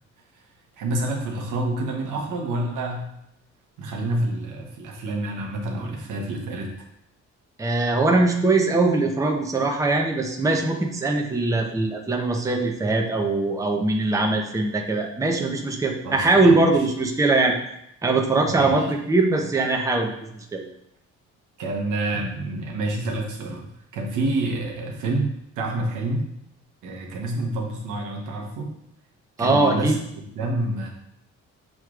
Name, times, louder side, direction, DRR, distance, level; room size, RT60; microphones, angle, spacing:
voice 1, 0.8-3.0 3.8-6.7 16.0-16.5 18.4-18.9 21.6-26.3 26.8-28.7 29.4-30.9, right 2 dB, 85° right, 0 dB, 1.0 m, -28 dB
voice 2, 7.6-17.6 18.0-20.6 29.4-29.9, right 2 dB, 10° right, 2 dB, 0.6 m, -21 dB
6.4 x 3.0 x 2.4 m, 0.78 s
cardioid pair, 90°, 30 cm